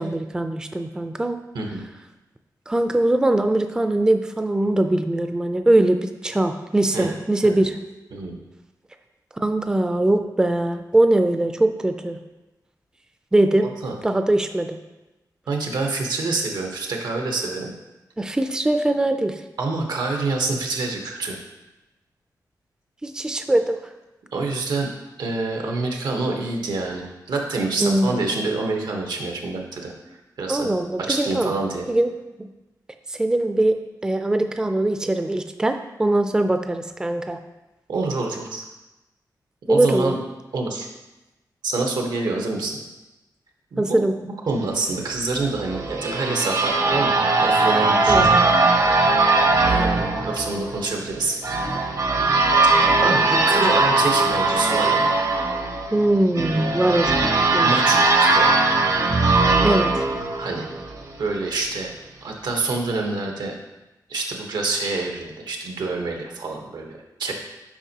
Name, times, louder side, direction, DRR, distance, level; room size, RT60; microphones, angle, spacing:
voice 1, 0.0-1.4 2.7-7.8 9.4-12.2 13.3-13.7 14.0-14.8 18.2-19.4 23.0-23.8 27.8-28.2 30.5-31.5 31.9-32.1 32.4-32.5 33.1-37.4 39.7-40.1 43.8-44.2 48.1-48.3 55.9-57.7 59.6-60.0, right 1 dB, 10° right, 7 dB, 0.3 m, -21 dB
voice 2, 15.5-17.7 19.6-21.4 24.3-24.9 25.2-29.9 30.4-30.7 31.1-31.8 37.9-38.6 39.7-40.2 40.5-40.9 41.6-42.8 43.7-48.4 49.6-51.4 53.0-55.1 57.6-58.5 60.4-60.7 61.2-61.9 62.2-63.5 64.1-67.3, right 3 dB, 90° right, 1 dB, 1.0 m, -26 dB
sound 1, 45.4-61.1, right 3 dB, 55° right, 0.7 m, -20 dB
7.2 x 5.2 x 2.8 m, 1.0 s
wide cardioid pair, 105°, 7 cm